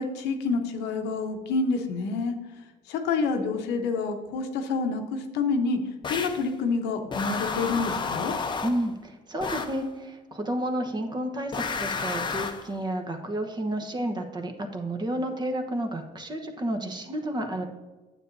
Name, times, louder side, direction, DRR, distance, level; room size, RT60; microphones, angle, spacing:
voice 1, 0.0-2.3 2.9-5.8 6.1-8.3, left 4 dB, 90° left, 5 dB, 1.0 m, -28 dB
sound 1, 6.0-6.5 7.1-8.9 9.4-9.8 11.5-12.7, left 4 dB, 25° left, 0.7 m, -31 dB
voice 2, 8.6-17.7, right 1 dB, 25° right, 5 dB, 1.0 m, -31 dB
9.2 x 7.8 x 2.7 m, 1.2 s
cardioid pair, 110°, 17 cm